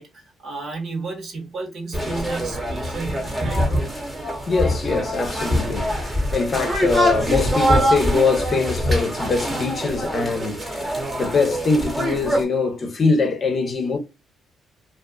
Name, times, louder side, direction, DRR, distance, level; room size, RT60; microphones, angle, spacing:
voice 1, 0.0-3.9, right 3 dB, 55° right, 1.2 m, -33 dB
sound 1, 1.9-12.4, equal, 15° right, 1.0 m, -24 dB
voice 2, 4.5-10.8 11.2-14.0, left 4 dB, 45° left, 0.7 m, -22 dB
2.5 x 2.4 x 2.3 m
cardioid pair, 105°, 0 cm